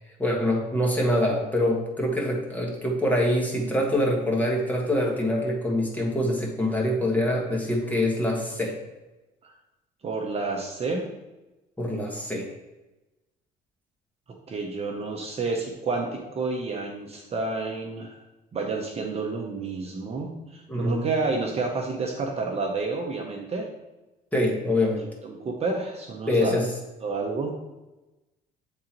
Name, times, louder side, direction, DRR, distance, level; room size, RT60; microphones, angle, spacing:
voice 1, 0.2-8.8 11.8-12.5 20.7-21.0 24.3-25.0 26.3-26.7, left 1 dB, 10° left, -1 dB, 1.5 m, -25 dB
voice 2, 10.0-11.1 14.5-18.2 18.5-23.7 25.2-26.6 27.0-27.5, right 3 dB, 35° right, 1 dB, 0.8 m, -30 dB
8.2 x 3.8 x 3.0 m, 1.1 s
cardioid pair, 110°, 17 cm